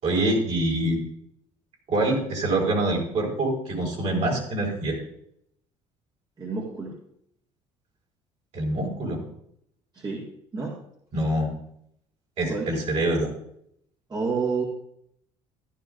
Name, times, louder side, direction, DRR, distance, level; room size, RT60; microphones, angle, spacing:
voice 1, 0.0-1.0 1.9-5.0 8.5-9.2 11.1-11.5 12.4-13.3, right 1 dB, 55° right, -2 dB, 4.7 m, -25 dB
voice 2, 6.4-6.9 9.9-10.2 10.5-10.7 12.5-12.7 14.1-14.6, right 4 dB, 30° right, -3 dB, 1.8 m, -29 dB
14.0 x 11.5 x 2.6 m, 0.73 s
cardioid pair, 95°, 13 cm